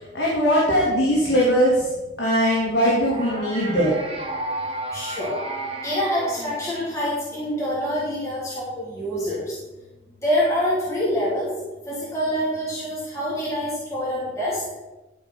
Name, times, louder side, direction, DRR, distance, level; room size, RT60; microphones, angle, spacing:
voice 1, 0.0-4.0, equal, 70° left, -5 dB, 2.9 m, -20 dB
sound 1, 3.1-7.3, right 2 dB, 30° right, 1.9 m, -32 dB
voice 2, 4.9-5.4 5.8-9.5 10.2-11.5 11.9-14.6, equal, 15° left, -8 dB, 3.2 m, -26 dB
13.5 x 5.3 x 6.0 m, 1.1 s
head